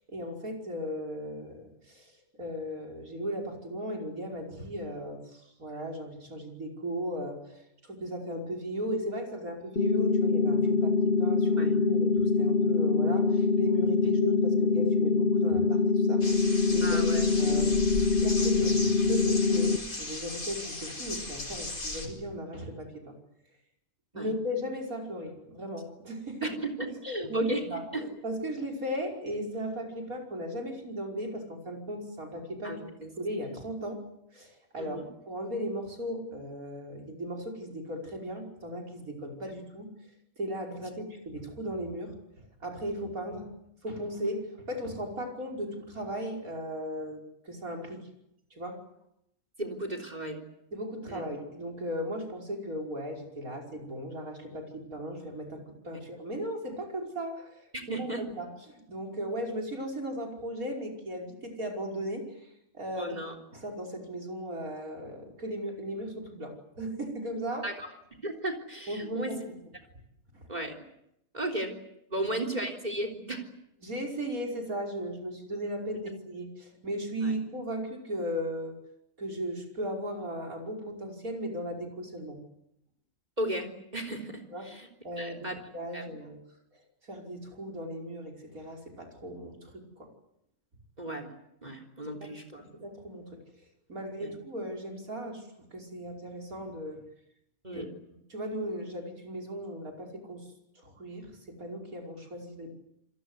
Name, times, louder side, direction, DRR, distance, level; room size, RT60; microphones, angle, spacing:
voice 1, 0.1-2.1 2.4-17.1 17.4-17.7 18.2-19.7 20.0-23.2 24.1-26.6 27.1-32.9 33.2-34.0 34.3-35.0 35.3-39.9 40.4-43.5 43.8-48.1 48.5-48.8 50.7-57.6 58.0-63.2 63.5-67.7 68.9-69.4 72.2-72.3 73.8-78.8 79.2-82.4 84.5-84.7 85.0-86.4 87.0-90.1 92.2-92.3 92.6-93.4 93.9-97.0 97.7-97.8 98.3-100.5 100.8-102.7, equal, 90° right, 2 dB, 5.9 m, -37 dB
sound 1, 9.8-19.8, left 4 dB, 45° left, 1.6 m, -24 dB
sound 2, 16.2-22.1, left 2 dB, 90° left, 5.3 m, -37 dB
voice 2, 16.8-17.2 17.6-17.8 24.1-24.3 26.4-27.6 27.9-28.0 32.6-33.1 34.8-35.1 39.5-39.6 49.6-50.4 51.1-51.2 57.7-58.2 63.0-63.4 67.6-67.9 68.2-69.5 70.5-70.8 71.3-71.7 72.1-73.5 77.2-77.3 83.4-84.9 85.2-85.6 85.9-86.2 91.0-91.3 91.6-92.6 94.2-94.3 97.6-97.9, right 1 dB, 30° right, 8 dB, 3.7 m, -35 dB
28.0 x 22.5 x 8.2 m, 0.79 s
omnidirectional pair, 1.4 m